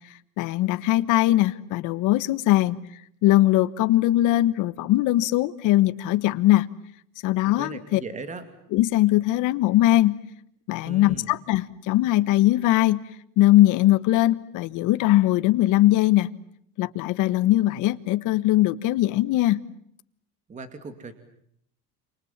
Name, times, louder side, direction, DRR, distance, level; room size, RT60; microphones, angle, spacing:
voice 1, 0.4-2.8 3.2-6.7 7.2-8.0 8.7-10.2 10.7-13.0 13.4-16.3 16.8-19.6, left 15 dB, 60° left, 1.4 m, -20 dB
voice 2, 7.5-8.5 10.8-11.3 20.5-21.2, right 3 dB, 20° right, 2.5 m, -38 dB
28.5 x 28.0 x 7.4 m
cardioid pair, 160°, 34 cm